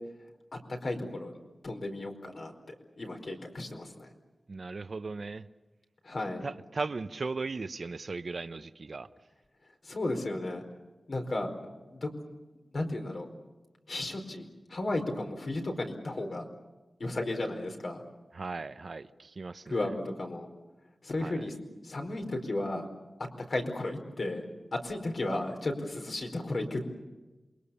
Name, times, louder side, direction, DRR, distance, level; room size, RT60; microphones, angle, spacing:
voice 1, 0.7-1.3 1.6-4.1 6.0-6.4 9.8-10.6 11.1-12.1 12.7-13.3 13.9-16.4 17.0-18.0 19.7-20.5 21.0-21.5 21.8-22.9 23.5-24.4 24.7-26.8, left 2 dB, 70° left, 3 dB, 4.6 m, -34 dB
voice 2, 4.5-5.5 6.4-9.1 18.3-19.9 21.2-21.5, right 3 dB, 65° right, 11 dB, 0.8 m, -37 dB
28.0 x 23.0 x 7.1 m, 1.1 s
wide cardioid pair, 95°, 0 cm